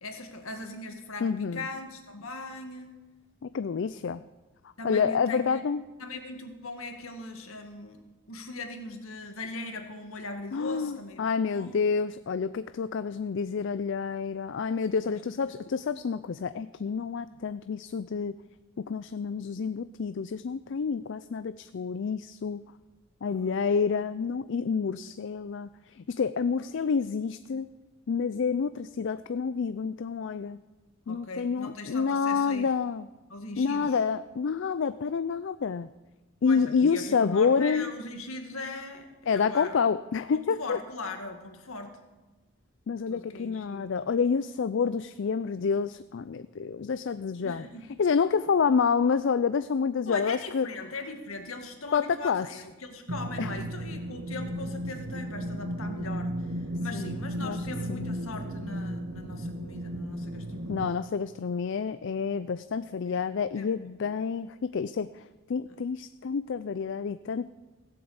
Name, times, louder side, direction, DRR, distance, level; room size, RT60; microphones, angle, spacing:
voice 1, 0.0-3.0 4.8-5.6 6.0-11.8 15.1-15.4 23.3-23.7 26.5-26.7 31.1-32.7 33.3-34.0 36.4-39.8 40.3-42.0 43.1-43.9 44.8-44.9 47.4-47.9 50.1-60.9 63.0-63.2 63.6-63.7 64.0-64.3 65.7-65.8, left 2 dB, 75° left, 4 dB, 2.0 m, -40 dB
voice 2, 1.2-1.7 3.4-4.2 4.8-5.8 10.5-18.4 18.9-22.6 23.2-25.7 26.0-27.7 28.1-30.6 31.1-33.1 33.6-35.9 36.4-37.9 39.3-40.8 42.9-47.7 48.0-50.7 51.9-52.6 53.4-53.5 56.9-57.6 57.9-58.1 60.7-65.2 65.5-67.5, left 5 dB, 55° left, 13 dB, 0.4 m, -28 dB
sound 1, 53.1-60.9, right 1 dB, 70° right, 1.5 m, -35 dB
17.0 x 7.9 x 8.0 m, 1.2 s
head